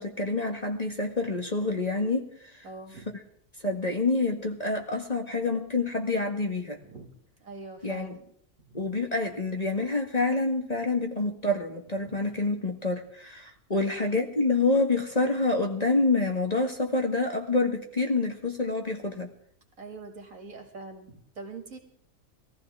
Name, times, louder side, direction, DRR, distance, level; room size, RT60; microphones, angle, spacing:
voice 1, 0.0-2.3 2.6-2.7 3.1-3.2 3.6-6.8 7.8-8.2 8.7-19.3, left 3 dB, 30° left, 2 dB, 1.6 m, -27 dB
voice 2, 2.6-3.1 6.8-7.1 7.4-8.2 8.7-8.9 12.0-12.3 13.7-14.0 19.8-21.8, right 3 dB, 70° right, 3 dB, 2.7 m, -43 dB
21.0 x 15.0 x 3.6 m, 0.64 s
omnidirectional pair, 1.5 m